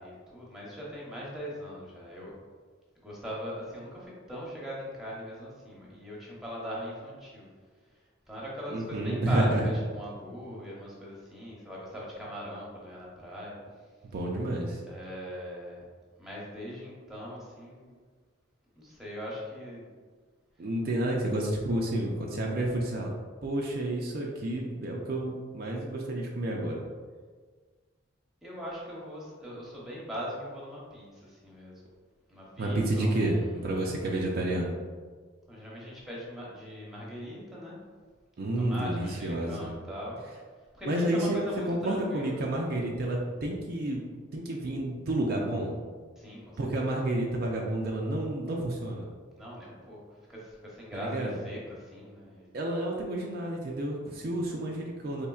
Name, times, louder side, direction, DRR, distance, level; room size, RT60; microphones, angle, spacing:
voice 1, 0.0-2.3 3.0-7.5 8.3-13.6 14.9-15.8 16.2-17.9 18.8-19.8 28.4-31.8 32.3-33.6 35.5-37.8 38.6-40.2 40.7-42.4 46.2-47.0 49.4-50.0 50.3-52.5, equal, ahead, -5 dB, 0.8 m, -40 dB
voice 2, 8.7-9.7 14.1-14.8 20.6-23.1 23.4-26.8 32.6-33.4 33.6-34.7 38.4-39.7 40.9-41.4 41.7-44.0 44.3-45.8 46.6-49.1 50.9-51.4 52.5-55.3, right 1 dB, 50° right, -1 dB, 0.4 m, -30 dB
4.3 x 3.2 x 2.3 m, 1.5 s
head